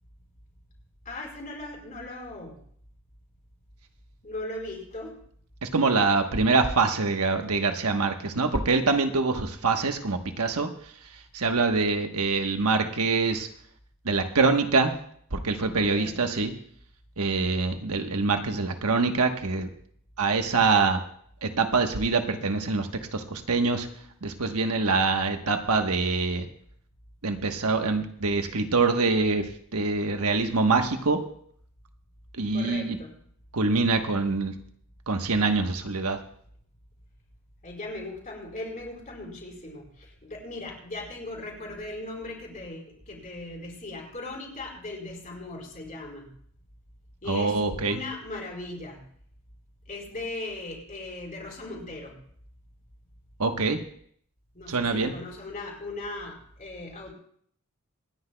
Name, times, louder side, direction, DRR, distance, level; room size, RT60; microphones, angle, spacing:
voice 1, 1.0-2.6 4.2-5.2 15.7-16.2 32.5-33.1 37.6-46.3 47.2-49.0 49.9-52.2 54.5-57.1, left 2 dB, 35° left, -1 dB, 4.3 m, -38 dB
voice 2, 5.6-10.7 11.3-13.5 14.0-14.9 15.3-16.5 17.2-19.7 20.2-21.0 21.4-23.9 24.2-26.5 27.2-29.5 29.7-31.2 32.3-33.0 33.5-34.5 35.1-36.2 47.3-48.0 53.4-53.8 54.7-55.1, right 4 dB, 85° right, 5 dB, 1.2 m, -24 dB
26.5 x 10.0 x 2.3 m, 0.63 s
head